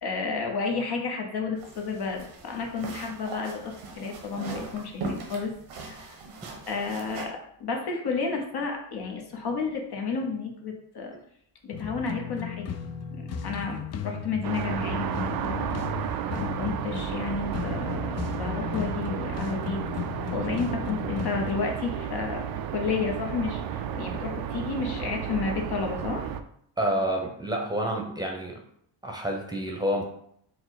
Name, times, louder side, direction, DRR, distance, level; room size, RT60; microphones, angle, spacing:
voice 1, 0.0-6.2 6.7-11.2 11.6-12.8 13.1-19.8 20.3-26.3, left 4 dB, 50° left, 2 dB, 0.9 m, -32 dB
sound 1, 1.6-7.3, right 3 dB, 85° right, 1.1 m, -40 dB
sound 2, 11.7-21.5, left 8 dB, 35° left, 0.4 m, -36 dB
sound 3, 14.4-26.4, right 9 dB, 50° right, 0.4 m, -32 dB
voice 2, 26.8-28.6 29.0-30.0, equal, 10° right, 0 dB, 0.8 m, -28 dB
4.4 x 2.1 x 4.0 m, 0.68 s
supercardioid pair, 75°, 49 cm